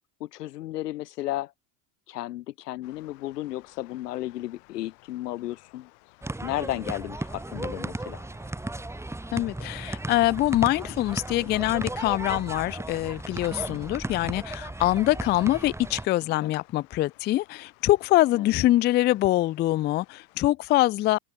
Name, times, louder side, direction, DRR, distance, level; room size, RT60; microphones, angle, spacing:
voice 1, 0.2-1.5 2.1-5.9 6.4-8.3 16.4-16.5 18.3-18.7, left 15 dB, 90° left, 2.0 m, -34 dB
sound 1, 2.8-20.5, left 38 dB, 65° left, 5.0 m, -57 dB
sound 2, 6.2-16.1, right 2 dB, 5° right, 1.9 m, -35 dB
voice 2, 9.3-21.2, left 16 dB, 25° left, 0.4 m, -24 dB
open air
supercardioid pair, 115°, 46 cm